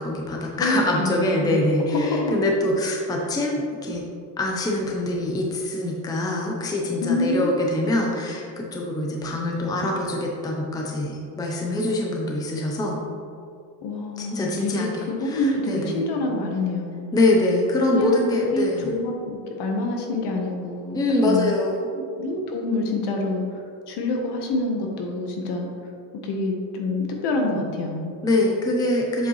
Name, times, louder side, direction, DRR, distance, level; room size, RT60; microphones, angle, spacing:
voice 1, 0.0-4.0 4.4-13.0 14.2-16.0 17.1-18.9 20.9-21.8 28.2-29.3, left 1 dB, 10° left, -1 dB, 0.6 m, -24 dB
voice 2, 0.6-1.5 1.9-2.3 7.0-7.9 13.8-17.1 17.9-21.0 21.2-21.5 22.2-25.7 26.2-28.1, left 2 dB, 55° left, 1 dB, 1.3 m, -26 dB
7.7 x 5.1 x 3.2 m, 2.4 s
cardioid pair, 120°, 48 cm